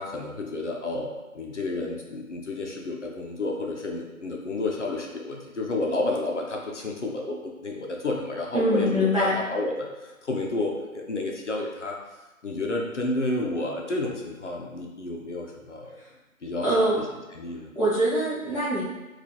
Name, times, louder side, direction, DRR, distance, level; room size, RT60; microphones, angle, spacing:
voice 1, 0.0-12.0 12.4-15.9 16.4-16.9 17.3-17.7, left 2 dB, 55° left, 0 dB, 0.6 m, -31 dB
voice 2, 8.5-9.4 16.0-16.1 16.6-17.0 17.7-18.9, equal, 25° right, -11 dB, 0.8 m, -24 dB
4.2 x 2.4 x 2.7 m, 1.1 s
figure-of-eight pair, 175°, 43 cm